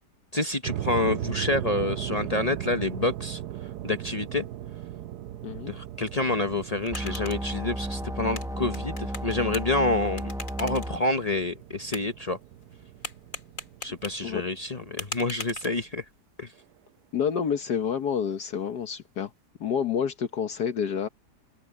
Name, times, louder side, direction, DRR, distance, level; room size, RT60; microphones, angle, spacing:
voice 1, 0.3-3.4 3.8-4.4 5.7-10.3 10.6-12.4 13.8-16.0 16.4-16.5, left 2 dB, 30° left, 0.7 m, -28 dB
sound 1, 0.6-15.9, right 12 dB, 75° right, 1.2 m, -38 dB
sound 2, 6.5-16.2, left 3 dB, 50° left, 3.3 m, -43 dB
sound 3, 6.9-11.0, equal, 5° right, 0.8 m, -33 dB
voice 2, 17.1-19.3 19.6-21.1, left 7 dB, 70° left, 1.7 m, -28 dB
open air
omnidirectional pair, 1.8 m